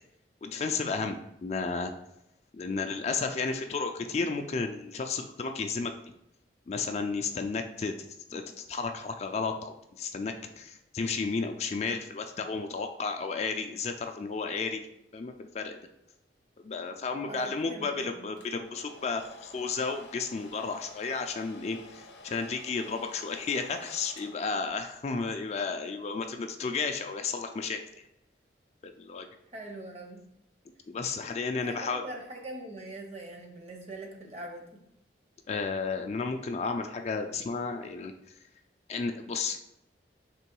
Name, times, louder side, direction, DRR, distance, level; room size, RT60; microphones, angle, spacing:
voice 1, 0.4-1.9 2.5-5.9 6.7-7.9 8.3-14.9 15.1-15.8 16.6-27.8 28.8-29.3 30.9-32.0 35.5-38.1 38.9-39.7, left 4 dB, 35° left, 5 dB, 0.3 m, -33 dB
voice 2, 17.2-18.3 29.5-30.2 31.1-34.8, right 2 dB, 35° right, 2 dB, 0.7 m, -43 dB
Domestic sounds home sounds, 18.4-25.1, left 3 dB, 70° left, 0.6 m, -51 dB
3.7 x 3.0 x 4.5 m, 0.83 s
head